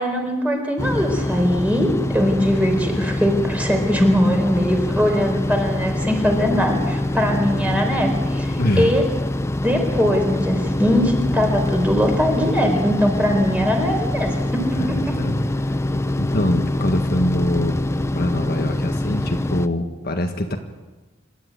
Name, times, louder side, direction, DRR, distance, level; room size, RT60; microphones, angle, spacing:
voice 1, 0.0-9.0 9.6-15.1, equal, 5° right, 2 dB, 4.2 m, -21 dB
sound 1, 0.8-19.7, left 1 dB, 15° left, 0.7 m, -24 dB
voice 2, 8.6-8.9 14.7-15.8 16.2-17.9 18.1-20.6, left 1 dB, 50° left, 4 dB, 1.7 m, -24 dB
27.0 x 13.0 x 9.6 m, 1.2 s
head